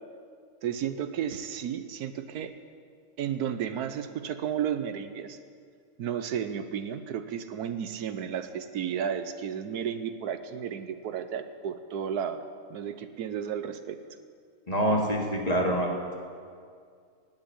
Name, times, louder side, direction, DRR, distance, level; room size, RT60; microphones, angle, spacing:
voice 1, 0.6-2.5 3.2-5.4 6.0-12.4 12.7-14.0, right 8 dB, 80° right, 10 dB, 1.3 m, -33 dB
voice 2, 14.7-16.2, equal, 25° left, 0 dB, 2.1 m, -26 dB
17.5 x 7.4 x 9.8 m, 2.2 s
omnidirectional pair, 1.7 m